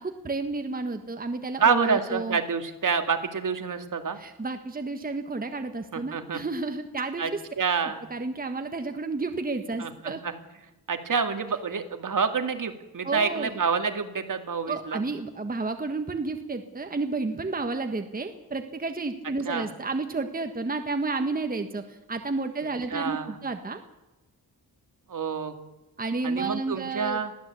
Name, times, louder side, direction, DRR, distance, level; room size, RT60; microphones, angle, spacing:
voice 1, 0.0-2.4 4.2-7.4 8.1-10.2 13.0-13.5 14.7-23.8 26.0-27.2, right 3 dB, 20° right, 6 dB, 1.5 m, -31 dB
voice 2, 1.6-4.2 5.9-6.4 7.2-7.3 7.6-8.1 9.8-10.3 10.9-15.0 19.5-19.7 22.9-23.3 25.1-25.5 26.2-27.3, right 5 dB, 55° right, 7 dB, 2.3 m, -27 dB
22.0 x 15.5 x 8.4 m, 1.0 s
wide cardioid pair, 135°, 39 cm